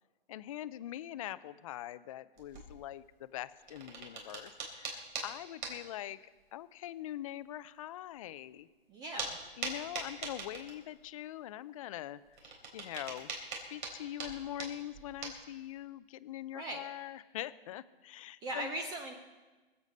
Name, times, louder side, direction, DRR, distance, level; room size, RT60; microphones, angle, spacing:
voice 1, 0.3-6.2 6.5-8.7 9.6-13.3 13.7-18.7, left 13 dB, 35° left, 15 dB, 0.4 m, -43 dB
sound 1, 2.4-2.8 3.5-5.3 5.6-5.7 6.4-6.5 8.2-8.3 9.2-9.4 9.6-11.1 12.2-15.5, right 4 dB, 55° right, 3.6 m, -41 dB
voice 2, 8.9-9.4 16.5-16.9 18.4-19.1, right 1 dB, 15° right, 5 dB, 0.5 m, -39 dB
23.5 x 8.2 x 5.3 m, 1.2 s
hypercardioid pair, 145°, 29 cm